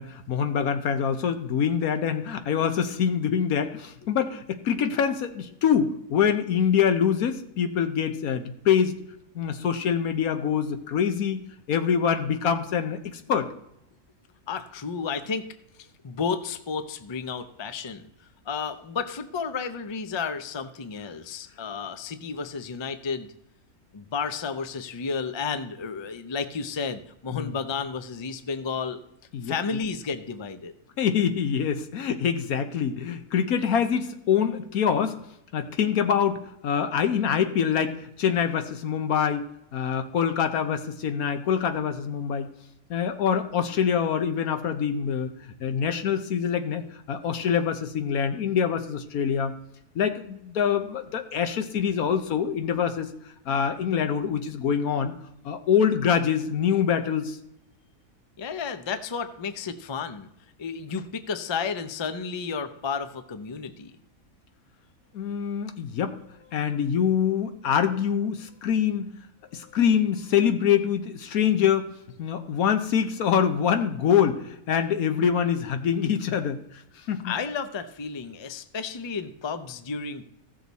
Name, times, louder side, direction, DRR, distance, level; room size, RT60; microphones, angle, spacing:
voice 1, 0.0-9.0 9.3-11.4 11.7-13.5 27.3-27.5 29.3-29.5 31.0-35.2 35.5-42.5 42.9-49.5 49.9-53.1 53.5-55.1 55.4-57.4 65.1-66.2 66.5-69.1 69.5-71.9 72.2-76.6 77.1-77.3, left 8 dB, 90° left, 8 dB, 1.4 m, -25 dB
voice 2, 14.5-15.5 15.8-18.0 18.5-23.3 23.9-29.0 29.4-30.7 58.4-60.3 60.6-63.9 77.2-80.2, left 5 dB, 40° left, 9 dB, 0.4 m, -32 dB
15.5 x 6.5 x 4.1 m, 0.80 s
omnidirectional pair, 1.5 m